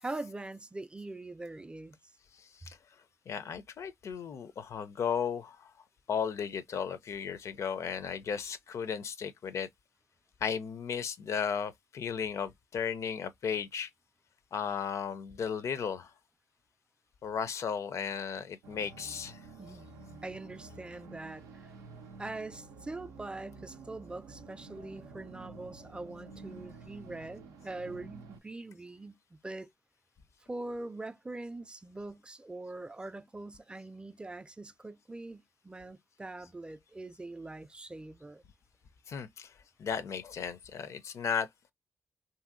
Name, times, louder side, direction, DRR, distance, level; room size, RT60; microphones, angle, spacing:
voice 1, 0.0-2.0 19.6-19.9 20.2-21.7 22.2-29.7 30.5-38.4, right 2 dB, 20° right, 0.4 m, -43 dB
voice 2, 2.3-2.8 3.3-5.7 6.1-9.7 10.4-13.9 14.5-16.1 17.2-19.5 39.1-41.5, left 7 dB, 65° left, 0.4 m, -35 dB
sound 1, 18.6-28.4, right 3 dB, 85° right, 0.4 m, -50 dB
2.7 x 2.6 x 2.4 m
supercardioid pair, 45°, 5 cm